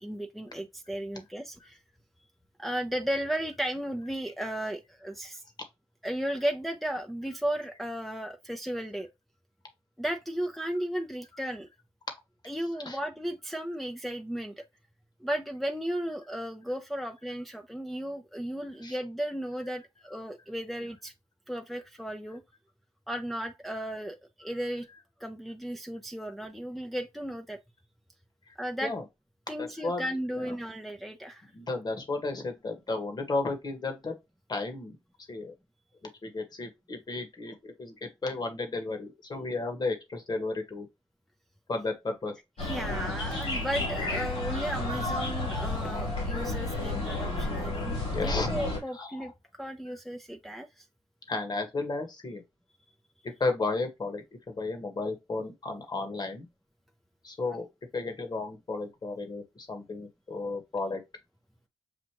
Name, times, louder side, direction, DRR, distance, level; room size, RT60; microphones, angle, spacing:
voice 1, 0.0-1.8 2.6-5.4 6.0-9.1 10.0-11.7 12.4-14.5 15.2-21.1 21.5-22.4 23.1-24.9 25.2-27.6 28.6-28.9 29.5-31.5 42.6-48.0 48.2-50.9, right 1 dB, ahead, 0.6 m, -35 dB
voice 2, 29.6-30.0 30.3-30.4 31.5-34.1 34.5-35.0 35.3-35.5 36.2-40.9 41.7-42.3 48.1-48.5 49.0-49.1 51.3-52.4 53.4-56.5 57.2-57.7 57.9-61.0, left 3 dB, 45° left, 1.4 m, -33 dB
sound 1, 42.6-48.8, left 2 dB, 85° left, 2.9 m, -31 dB
6.2 x 2.5 x 3.0 m
cardioid pair, 60°, 10 cm